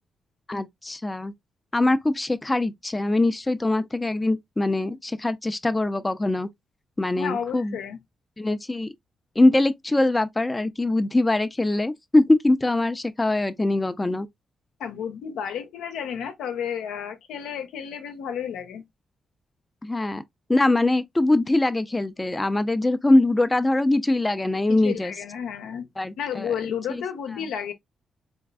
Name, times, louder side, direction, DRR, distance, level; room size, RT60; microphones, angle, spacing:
voice 1, 0.5-1.3 1.7-6.5 7.0-7.8 8.4-8.9 9.4-14.3 19.8-20.2 20.5-25.1 26.0-26.5 26.9-27.0, left 2 dB, 20° left, 0.5 m, -22 dB
voice 2, 7.2-8.0 14.8-18.8 24.7-25.9 26.2-27.7, left 8 dB, 85° left, 0.7 m, -32 dB
3.9 x 3.5 x 2.2 m
supercardioid pair, 55°, 0 cm